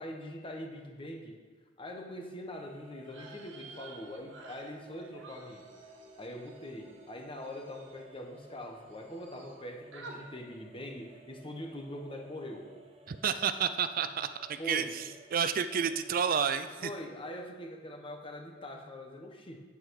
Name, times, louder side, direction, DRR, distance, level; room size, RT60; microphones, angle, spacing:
voice 1, 0.0-1.4 1.8-5.6 6.2-12.7 14.6-14.9 16.8-19.6, left 1 dB, 30° left, 2 dB, 1.3 m, -43 dB
sound 1, 2.5-16.7, right 1 dB, 30° right, 1.2 m, -56 dB
sound 2, 3.0-8.6 8.9-9.6 9.9-10.2, right 3 dB, 75° right, 1.6 m, -53 dB
voice 2, 13.1-16.9, right 7 dB, 50° right, 11 dB, 0.4 m, -31 dB
9.7 x 8.3 x 4.8 m, 1.4 s
head